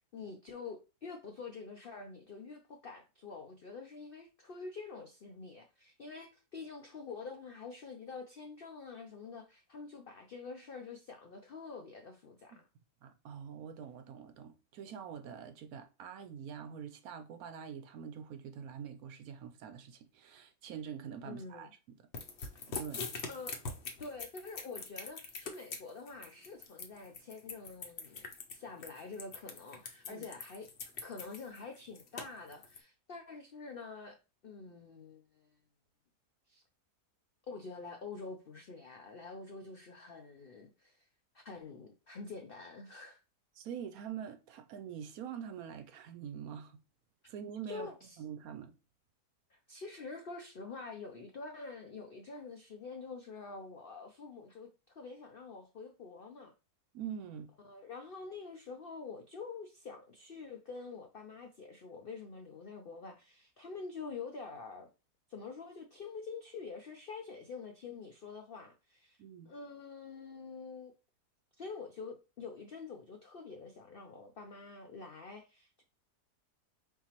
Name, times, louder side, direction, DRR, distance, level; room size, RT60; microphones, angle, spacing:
voice 1, 0.1-12.6 21.2-21.7 23.3-23.6 24.0-28.2 28.5-30.7 31.0-34.2 34.4-35.5 36.5-36.6 37.5-41.1 41.3-43.2 47.7-48.2 49.5-56.5 57.6-64.9 65.3-70.9 71.6-75.8, left 4 dB, 75° left, 0.5 m, -47 dB
voice 2, 13.0-22.0 22.8-23.1 30.1-30.2 43.6-46.8 47.3-47.9 48.2-48.7 56.9-57.5 69.2-69.5, right 8 dB, 70° right, 1.0 m, -45 dB
sound 1, 22.1-32.8, left 4 dB, 50° left, 0.9 m, -43 dB
4.5 x 3.7 x 2.9 m
omnidirectional pair, 1.8 m